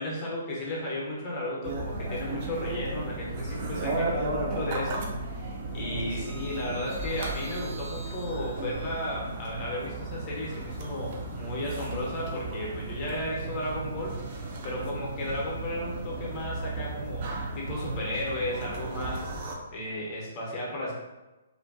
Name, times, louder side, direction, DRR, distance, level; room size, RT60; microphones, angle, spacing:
voice 1, 0.0-14.1 14.6-19.3 19.7-20.9, left 1 dB, 30° left, -5 dB, 0.7 m, -34 dB
sound 1, 1.6-19.6, right 2 dB, 40° right, 0.4 m, -35 dB
2.5 x 2.2 x 2.4 m, 1.1 s
figure-of-eight pair, 125°, 0 cm